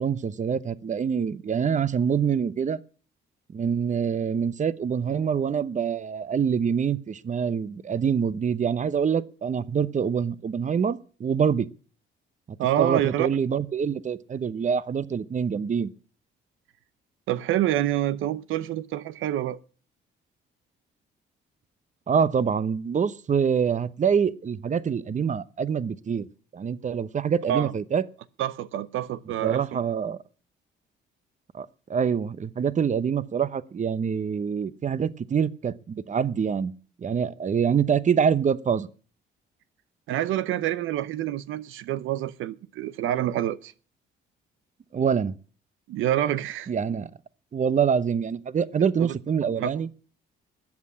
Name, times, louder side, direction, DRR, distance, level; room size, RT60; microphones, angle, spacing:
voice 1, 0.0-2.8 3.5-11.7 12.5-15.9 22.1-26.2 26.5-28.0 29.4-30.2 31.5-36.7 37.0-38.9 44.9-45.3 46.7-47.1 47.5-49.9, right 7 dB, 40° right, 0.9 m, -25 dB
voice 2, 12.6-13.3 17.3-19.6 27.5-27.7 28.4-29.8 40.1-43.7 45.9-46.7 49.0-49.1 49.6-49.7, right 12 dB, 85° right, 0.8 m, -27 dB
13.0 x 8.6 x 9.6 m
cardioid pair, 90°, 20 cm